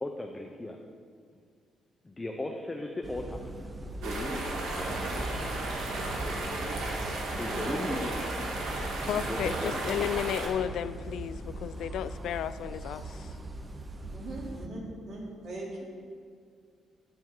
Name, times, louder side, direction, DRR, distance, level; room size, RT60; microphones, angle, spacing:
voice 1, 0.0-0.8 2.0-3.5 4.0-4.4 4.8-5.0 7.4-8.1 9.3-10.1, left 2 dB, 15° left, 2 dB, 0.6 m, -36 dB
sound 1, 3.0-14.7, right 1 dB, 25° right, 0.7 m, -39 dB
sound 2, 4.0-10.5, right 2 dB, 90° right, 1.7 m, -34 dB
voice 2, 7.4-7.8 14.1-15.8, right 2 dB, 65° right, -4 dB, 2.9 m, -40 dB
voice 3, 9.0-13.3, left 10 dB, 80° left, 14 dB, 0.3 m, -33 dB
10.5 x 9.2 x 3.8 m, 2.1 s
cardioid pair, 120°, 0 cm